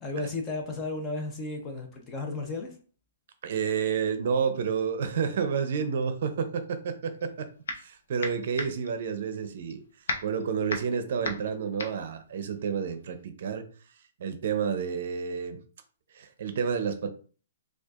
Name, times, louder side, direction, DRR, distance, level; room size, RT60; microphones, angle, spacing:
voice 1, 0.0-2.8, left 2 dB, 20° left, 3 dB, 0.7 m, -34 dB
voice 2, 3.4-7.5 7.8-9.8 10.2-13.7 14.2-15.6 16.1-17.1, right 6 dB, 60° right, 9 dB, 0.5 m, -30 dB
sound 1, 7.1-7.9 8.2-13.2, left 2 dB, 85° left, 0.7 m, -35 dB
4.4 x 2.4 x 2.4 m, 0.39 s
hypercardioid pair, 150°, 0 cm